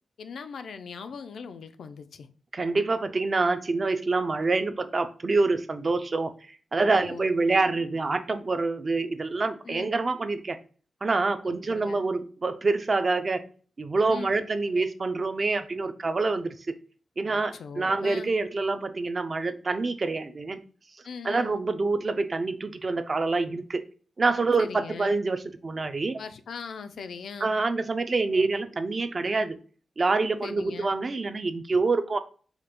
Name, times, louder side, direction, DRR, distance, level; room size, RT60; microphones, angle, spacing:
voice 1, 0.2-2.3 6.8-7.3 9.7-10.0 11.4-12.1 14.1-14.3 17.3-18.3 21.0-21.6 24.6-25.2 26.2-27.5 30.4-30.9, left 5 dB, 85° left, 9 dB, 0.3 m, -40 dB
voice 2, 2.5-6.3 6.7-10.6 11.0-13.5 13.8-16.6 17.2-20.6 21.2-23.8 24.2-26.2 27.4-29.6 30.0-32.2, right 3 dB, 35° right, 9 dB, 0.3 m, -26 dB
4.9 x 2.2 x 2.9 m, 0.40 s
wide cardioid pair, 155°, 0 cm